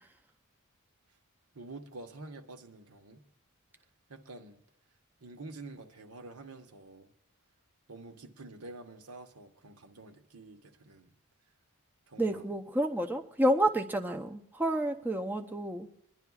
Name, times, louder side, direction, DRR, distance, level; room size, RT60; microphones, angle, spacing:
voice 1, 1.5-3.2 4.1-4.6 5.2-7.1 7.9-11.1 12.1-12.5, right 2 dB, 85° right, 1.3 m, -48 dB
voice 2, 12.2-15.9, right 1 dB, 10° right, 0.6 m, -29 dB
27.5 x 11.0 x 2.4 m
head